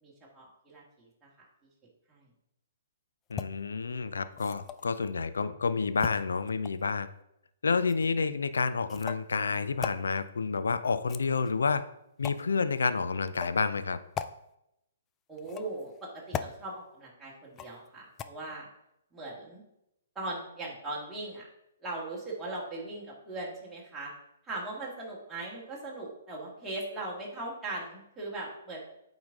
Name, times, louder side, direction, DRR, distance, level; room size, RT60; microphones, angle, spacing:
voice 1, 0.0-1.3 2.1-2.2 15.3-18.7 19.1-19.6 20.2-21.5 21.8-24.1 24.4-28.8, right 2 dB, 10° right, -6 dB, 1.9 m, -39 dB
voice 2, 3.3-7.1 7.6-11.8 12.2-14.0, left 4 dB, 80° left, 13 dB, 0.5 m, -29 dB
sound 1, 3.3-3.5 4.3-5.0 6.0-6.9 7.9-8.1 8.9-9.3 9.8-10.0 10.9-11.6 12.2-12.5 13.3-13.6 14.1-14.3 15.4-15.8 16.3-16.5 17.6-17.9 18.2-18.3, left 8 dB, 20° left, 0.4 m, -38 dB
8.7 x 4.0 x 3.6 m, 0.81 s
hypercardioid pair, 135°, 0 cm